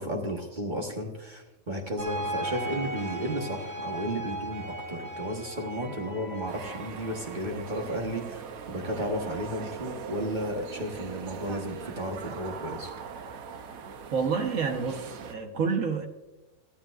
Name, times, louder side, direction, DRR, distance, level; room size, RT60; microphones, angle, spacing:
voice 1, 0.0-12.9, equal, 35° right, 1 dB, 1.5 m, -33 dB
sound 1, 2.0-8.4, right 1 dB, 50° right, 1.9 m, -37 dB
sound 2, 6.5-15.3, right 6 dB, 85° right, 1.3 m, -41 dB
voice 2, 14.1-16.1, right 5 dB, 70° right, 5 dB, 1.5 m, -28 dB
16.0 x 13.0 x 2.5 m, 1.1 s
omnidirectional pair, 1.4 m